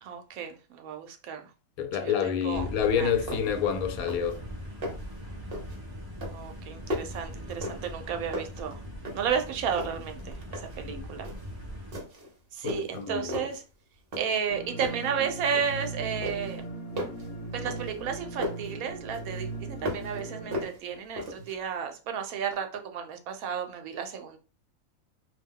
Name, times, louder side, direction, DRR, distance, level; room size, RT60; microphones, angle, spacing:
voice 1, 0.0-1.5 2.0-2.7 3.0-3.1 6.3-8.8 9.1-11.3 12.5-13.6 14.2-16.6 17.5-24.4, right 7 dB, 80° right, 1.0 m, -33 dB
voice 2, 1.8-4.4 10.9-11.1 12.6-13.3, left 8 dB, 85° left, 1.0 m, -28 dB
sound 1, 2.5-12.0, equal, 25° right, 0.4 m, -41 dB
sound 2, 2.8-2.9 3.3-3.7 4.0-4.4 4.7-5.2 5.5-5.8 6.2-8.0 8.3-9.4 9.7-10.8 11.2-11.5 11.9-12.3 12.7-13.6 14.1-14.5 14.8-15.9 16.2-18.7 19.1-20.2 20.5-21.6, equal, 50° right, 0.9 m, -37 dB
sound 3, 14.5-20.6, right 2 dB, 60° left, 0.8 m, -38 dB
2.5 x 2.2 x 3.5 m
omnidirectional pair, 1.5 m